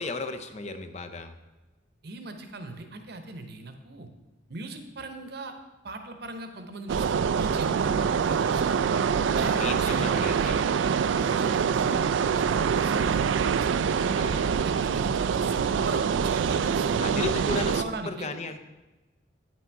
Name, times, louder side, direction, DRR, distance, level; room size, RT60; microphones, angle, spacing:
voice 1, 0.0-1.3 9.5-10.7 13.9-14.6 17.0-18.6, left 2 dB, 35° left, 9 dB, 0.6 m, -34 dB
voice 2, 2.0-4.1 4.5-5.5 5.8-8.8 9.3-10.5 11.2-13.3 14.5-18.4, right 2 dB, 60° right, 7 dB, 0.9 m, -39 dB
sound 1, 6.9-17.8, right 6 dB, 80° right, 0.3 m, -25 dB
9.3 x 6.2 x 4.6 m, 1.1 s
head